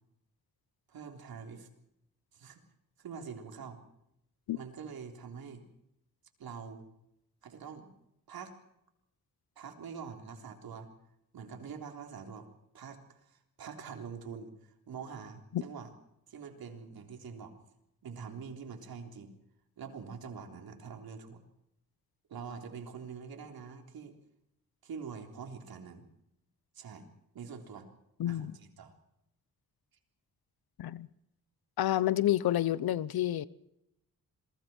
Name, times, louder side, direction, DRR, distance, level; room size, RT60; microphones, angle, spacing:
voice 1, 0.9-1.7 2.3-2.6 3.0-3.8 4.5-5.6 6.4-6.9 7.4-7.9 8.3-8.5 9.6-10.9 11.3-12.5 12.7-15.9 16.3-17.5 18.0-19.3 19.8-21.4 22.3-24.1 24.8-26.1 26.7-27.1 27.3-27.9 28.3-28.9, right 6 dB, 80° right, 3.9 m, -45 dB
voice 2, 28.2-28.6 30.8-31.1 31.8-33.5, left 13 dB, 85° left, 1.0 m, -29 dB
28.0 x 22.0 x 4.6 m
cardioid pair, 85°, 36 cm